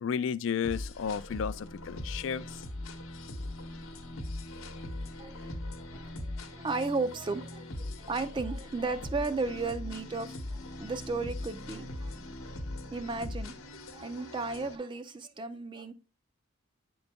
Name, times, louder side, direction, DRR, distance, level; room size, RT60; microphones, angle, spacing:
voice 1, 0.0-2.6, left 7 dB, 60° left, 0.3 m, -33 dB
sound 1, 0.6-14.8, left 1 dB, 80° left, 0.9 m, -40 dB
voice 2, 5.2-5.5 5.9-6.0 6.5-7.7 8.0-12.2 12.9-13.5 13.9-15.9, right 3 dB, 20° right, 0.4 m, -34 dB
8.9 x 3.9 x 3.5 m
head